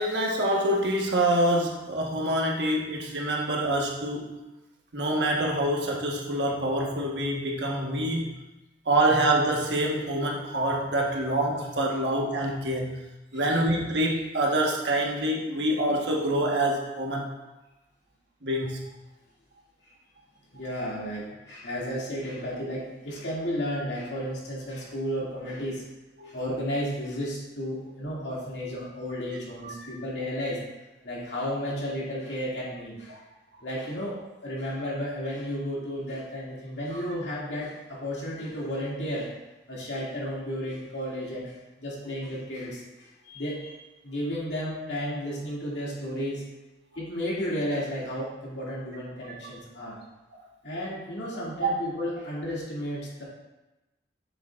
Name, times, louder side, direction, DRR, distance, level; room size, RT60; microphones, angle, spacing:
voice 1, 0.0-4.4 4.9-8.3 8.8-13.0 13.3-17.3 18.4-18.8 26.2-26.3 29.7-29.9 33.1-33.2 49.4-49.5 51.6-51.7, right 1 dB, 75° right, -1 dB, 1.3 m, -26 dB
voice 2, 20.5-25.9 26.2-30.6 31.0-33.2 33.6-39.3 39.7-43.8 44.0-46.4 47.0-50.0 50.6-53.2, equal, 85° left, -6 dB, 2.3 m, -33 dB
7.7 x 7.3 x 2.5 m, 1.0 s
head